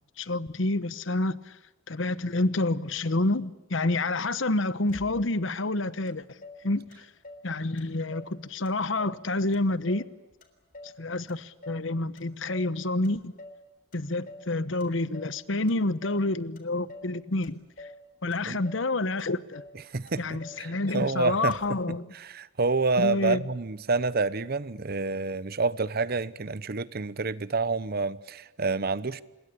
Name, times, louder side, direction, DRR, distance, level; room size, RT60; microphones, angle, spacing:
voice 1, 0.2-1.5 1.9-6.2 6.6-7.1 7.4-10.1 11.0-13.3 13.9-17.9 18.2-19.6 20.2-22.1 23.0-23.4, left 2 dB, 70° left, 1.1 m, -28 dB
Motor vehicle (road), 4.9-5.5 6.1-6.2 6.4-7.5 7.8-8.4 8.7-9.2 9.5-11.0 11.3-11.9 12.2-12.8 13.0-13.6 13.9-14.5 14.8-15.4 15.7-16.3 16.6-17.1 17.4-18.0 18.3-18.9 19.2-19.3 19.5-19.8 20.1-20.6 20.9-21.0 21.3-21.8, left 1 dB, 45° left, 3.6 m, -47 dB
voice 2, 19.9-21.6 22.1-29.2, right 3 dB, 50° right, 0.9 m, -28 dB
26.0 x 21.5 x 8.5 m
head